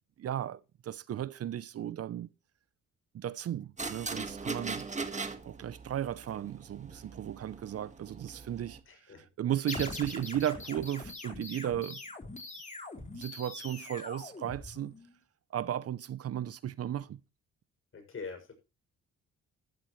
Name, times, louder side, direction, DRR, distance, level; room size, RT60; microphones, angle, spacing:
voice 1, 0.2-2.3 3.1-4.9 5.4-12.0 13.0-14.9 15.5-17.2, right 11 dB, 55° right, 0.7 m, -35 dB
sound 1, 3.8-8.8, right 4 dB, 25° right, 1.8 m, -40 dB
voice 2, 8.9-9.3 17.9-18.5, left 4 dB, 45° left, 6.6 m, -43 dB
sound 2, 9.7-15.1, left 3 dB, 25° left, 4.1 m, -43 dB
14.5 x 13.5 x 3.2 m
cardioid pair, 90°, 30 cm